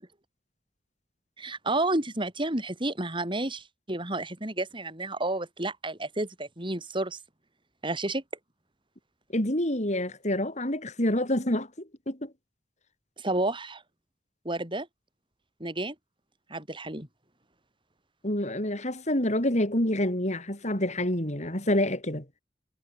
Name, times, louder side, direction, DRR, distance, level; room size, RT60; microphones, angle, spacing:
voice 1, 1.4-7.2 7.8-8.2 13.2-13.8 14.4-14.9 15.6-15.9 16.5-17.1, right 2 dB, 30° right, 7.8 m, -31 dB
voice 2, 9.3-12.3 18.2-22.2, left 1 dB, 40° left, 6.4 m, -27 dB
head